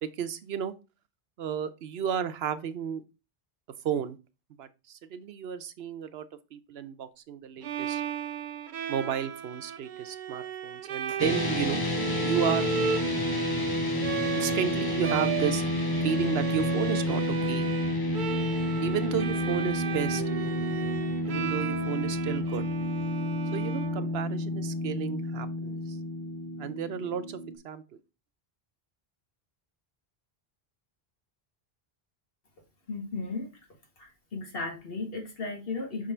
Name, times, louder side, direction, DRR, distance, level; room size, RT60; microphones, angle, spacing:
voice 1, 0.0-0.7 1.4-3.0 3.8-4.2 4.6-6.3 6.5-8.0 8.9-11.8 12.2-12.7 14.4-15.6 16.0-17.7 18.8-20.2 21.3-22.7 23.5-25.8 26.6-27.4 27.6-27.8, right 8 dB, 80° right, 12 dB, 0.9 m, -32 dB
Bowed string instrument, 7.6-24.5, right 7 dB, 60° right, 0.6 m, -36 dB
sound 1, 11.2-27.6, left 1 dB, 25° left, 0.8 m, -30 dB
voice 2, 32.9-33.5 34.0-36.1, left 3 dB, 65° left, 1 dB, 2.1 m, -35 dB
6.0 x 3.8 x 4.3 m, 0.29 s
omnidirectional pair, 1.0 m